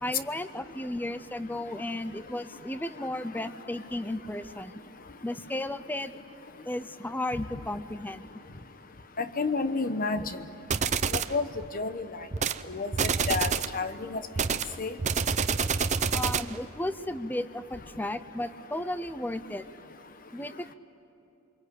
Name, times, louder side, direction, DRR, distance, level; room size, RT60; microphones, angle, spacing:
voice 1, 0.0-4.7 5.2-6.1 6.6-8.4 13.2-13.3 16.1-19.7 20.3-20.7, left 1 dB, 10° left, 12 dB, 0.6 m, -34 dB
voice 2, 9.2-10.4 11.1-11.5 11.7-12.1 12.7-14.2 14.8-15.0, left 4 dB, 40° left, 10 dB, 1.1 m, -30 dB
sound 1, 10.7-11.4 12.3-12.6 12.9-13.8 14.4-16.6, right 6 dB, 35° right, 0.6 m, -27 dB
28.5 x 24.5 x 8.4 m, 3.0 s
head